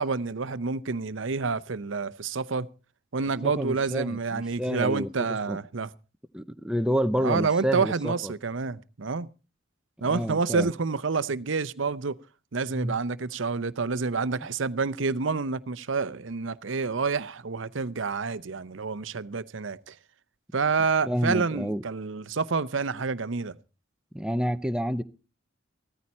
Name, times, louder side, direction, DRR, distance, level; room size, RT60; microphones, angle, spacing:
voice 1, 0.0-2.7 3.1-5.9 7.2-9.3 10.0-12.2 12.5-20.0 20.5-23.6, right 4 dB, 70° right, 0.7 m, -28 dB
voice 2, 3.4-5.1 5.5-5.6 6.3-8.3 10.0-10.7 12.7-12.9 21.1-21.8 24.1-25.0, equal, 5° right, 0.7 m, -29 dB
15.5 x 14.0 x 4.2 m
head